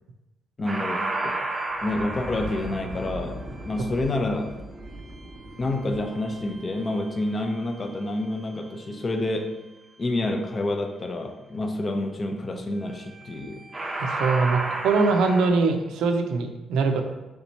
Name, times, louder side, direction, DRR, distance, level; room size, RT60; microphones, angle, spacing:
voice 1, 0.6-1.4 1.8-4.5 5.6-9.5 10.0-13.6, left 2 dB, 35° left, 5 dB, 0.5 m, -28 dB
sound 1, 0.7-7.8 13.1-13.4 13.7-15.5, right 2 dB, 20° right, 0.6 m, -33 dB
voice 2, 14.0-17.0, right 4 dB, 85° right, 5 dB, 0.4 m, -22 dB
3.4 x 2.9 x 4.1 m, 1.1 s
cardioid pair, 90°, 0 cm